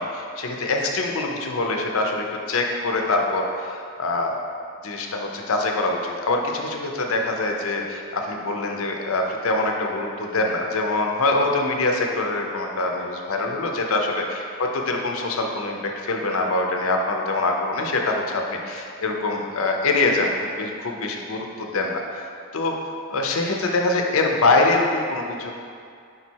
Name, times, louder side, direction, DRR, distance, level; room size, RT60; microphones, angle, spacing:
voice 1, 0.0-4.4 4.8-22.7 23.1-25.5, left 2 dB, 75° left, 2 dB, 0.7 m, -24 dB
5.2 x 4.1 x 4.6 m, 2.3 s
head